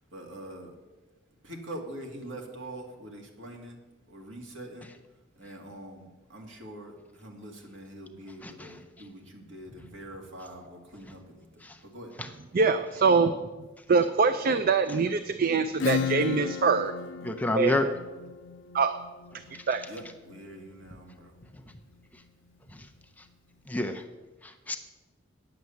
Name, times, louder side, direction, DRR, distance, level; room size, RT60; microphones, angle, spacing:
voice 1, 0.1-0.8 1.4-3.8 4.1-4.9 5.4-12.1 19.9-21.3, right 1 dB, 70° right, 2 dB, 2.0 m, -44 dB
voice 2, 8.4-8.7 11.6-11.7 17.2-17.9 23.7-24.0 24.7-24.8, left 1 dB, 10° left, 5 dB, 0.6 m, -28 dB
voice 3, 12.5-13.5 13.9-16.9 17.5-17.7 18.7-18.9 19.5-19.8, right 4 dB, 45° right, 10 dB, 0.4 m, -24 dB
Acoustic guitar / Strum, 15.8-21.2, left 6 dB, 65° left, 0.5 m, -35 dB
9.4 x 7.7 x 7.0 m, 1.2 s
head